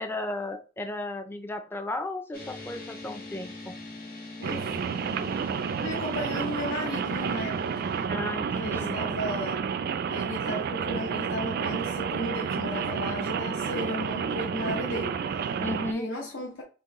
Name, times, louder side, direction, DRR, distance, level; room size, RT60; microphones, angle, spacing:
voice 1, 0.0-3.7 8.1-9.0 15.6-16.1, left 2 dB, 10° left, 0.4 m, -34 dB
sound 1, 2.3-8.1, left 2 dB, 50° left, 1.7 m, -42 dB
voice 2, 4.4-4.8 5.8-8.0 8.6-9.6 10.1-15.6 15.9-16.6, left 1 dB, 80° left, 0.9 m, -35 dB
Rain, 4.4-15.9, right 6 dB, 55° right, 0.3 m, -30 dB
4.5 x 3.1 x 3.0 m
head